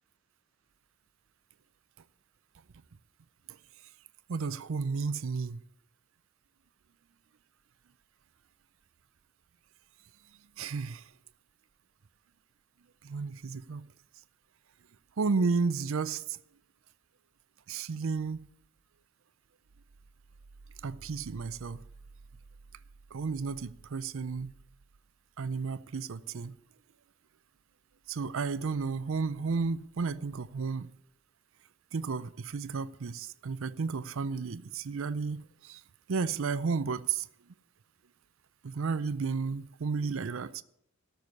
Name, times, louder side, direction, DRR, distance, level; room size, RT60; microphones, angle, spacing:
voice 1, 4.3-5.6 10.6-11.0 13.0-13.8 15.2-16.4 17.7-18.5 20.8-21.8 23.1-24.5 25.4-26.5 28.1-30.9 31.9-35.8 36.1-37.3 38.6-40.6, right 4 dB, 60° right, 0.5 m, -32 dB
13.5 x 6.8 x 9.6 m
head